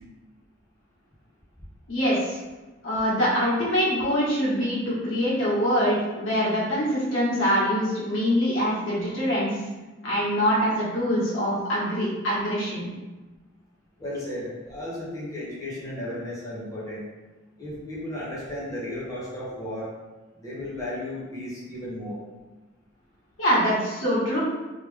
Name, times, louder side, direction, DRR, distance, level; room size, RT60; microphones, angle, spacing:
voice 1, 1.9-2.4 2.8-9.5 10.0-12.9 23.4-24.4, equal, 80° left, -7 dB, 1.5 m, -24 dB
voice 2, 14.0-17.0 17.6-19.9 20.4-22.2, left 1 dB, 20° left, -8 dB, 1.1 m, -34 dB
3.2 x 3.0 x 3.3 m, 1.2 s
head